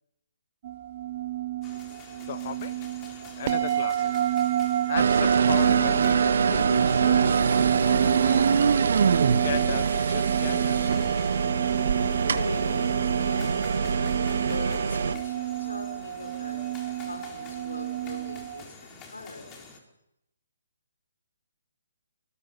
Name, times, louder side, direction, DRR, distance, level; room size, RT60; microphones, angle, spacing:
sound 1, 0.6-18.6, right 12 dB, 40° right, 1.9 m, -30 dB
sound 2, 1.6-19.8, left 4 dB, 20° left, 4.1 m, -48 dB
voice 1, 2.3-2.7 3.4-4.1 4.9-8.9 9.4-10.8, left 9 dB, 45° left, 13 dB, 1.5 m, -36 dB
sound 3, 5.0-15.2, right 6 dB, 60° right, 1.7 m, -24 dB
voice 2, 11.4-14.0 14.5-19.6, left 2 dB, 80° left, 4 dB, 5.0 m, -41 dB
26.5 x 20.5 x 5.8 m, 0.83 s
figure-of-eight pair, 140°, 0 cm